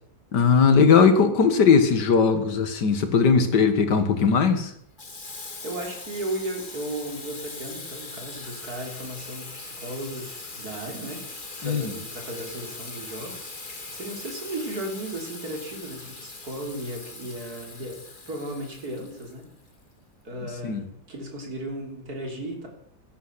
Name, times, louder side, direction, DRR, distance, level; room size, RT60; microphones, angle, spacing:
voice 1, 0.3-4.7 11.6-11.9 20.6-20.8, left 5 dB, 65° left, 9 dB, 2.0 m, -19 dB
Water tap faucet / Sink (filling or washing), 5.0-19.7, left 3 dB, 25° left, 1.8 m, -40 dB
voice 2, 5.6-11.2 11.6-13.5 13.9-18.0 18.3-19.4 20.2-22.7, right 1 dB, 50° right, 1 dB, 3.9 m, -35 dB
15.5 x 11.5 x 5.8 m, 0.70 s
omnidirectional pair, 2.1 m